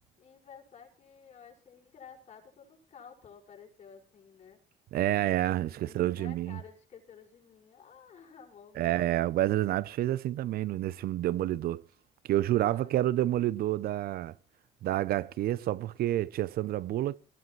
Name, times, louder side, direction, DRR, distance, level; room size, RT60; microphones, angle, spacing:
voice 1, 0.2-4.6 5.8-9.0 12.6-13.3, left 7 dB, 40° left, 5.5 m, -53 dB
voice 2, 4.9-6.6 8.8-11.8 12.3-14.3 14.8-17.2, right 14 dB, 65° right, 0.6 m, -29 dB
21.0 x 15.5 x 3.1 m
cardioid pair, 110°, 17 cm